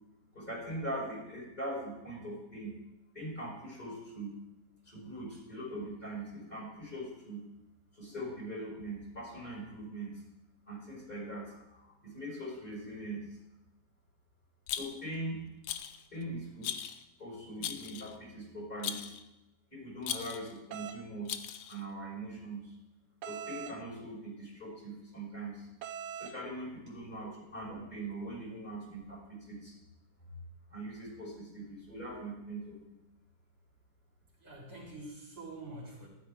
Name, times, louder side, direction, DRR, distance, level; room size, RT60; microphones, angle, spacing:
voice 1, 0.3-2.7 3.1-4.4 4.8-7.4 7.9-10.2 10.7-13.2 14.7-15.4 16.1-16.7 17.2-19.0 19.7-22.8 23.2-25.7 26.2-29.7 30.3-30.4 30.7-33.0, right 1 dB, 30° left, -5 dB, 5.7 m, -41 dB
Rattle, 14.7-15.2 15.6-16.0 16.6-17.0 17.6-18.2 18.8-19.2 20.0-20.5 21.3-21.8, left 10 dB, 80° left, 1.2 m, -38 dB
sound 1, 20.7-21.0 23.2-23.8 25.8-26.4, right 8 dB, 90° right, 1.3 m, -41 dB
voice 2, 34.4-36.1, right 2 dB, 70° right, -4 dB, 4.5 m, -46 dB
13.5 x 12.0 x 3.6 m, 0.96 s
omnidirectional pair, 1.8 m